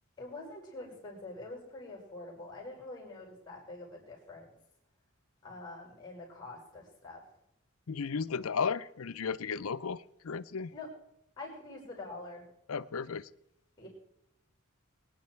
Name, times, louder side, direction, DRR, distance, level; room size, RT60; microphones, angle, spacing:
voice 1, 0.2-4.5 5.4-7.2 10.7-10.9 11.4-12.5 13.8-13.9, left 2 dB, 20° left, 0 dB, 5.4 m, -45 dB
voice 2, 7.9-10.0 10.2-10.7 12.7-13.2, left 5 dB, 75° left, 16 dB, 0.6 m, -34 dB
24.0 x 9.5 x 4.5 m, 0.81 s
head